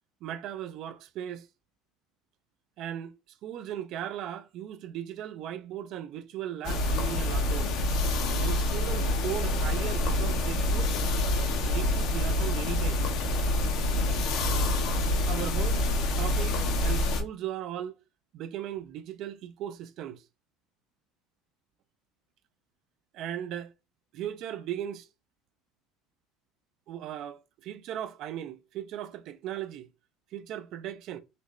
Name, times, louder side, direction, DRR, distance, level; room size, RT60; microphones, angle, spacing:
voice 1, 0.2-1.5 2.8-3.1 3.4-7.7 8.4-11.0 11.6-13.0 15.3-18.0 18.3-20.2 23.1-23.7 24.1-25.1 26.9-29.9 30.3-31.2, right 11 dB, 60° right, 0.3 m, -37 dB
sound 1, 6.6-17.2, left 1 dB, 65° left, 0.8 m, -27 dB
4.0 x 2.1 x 3.0 m
supercardioid pair, 95°, 0 cm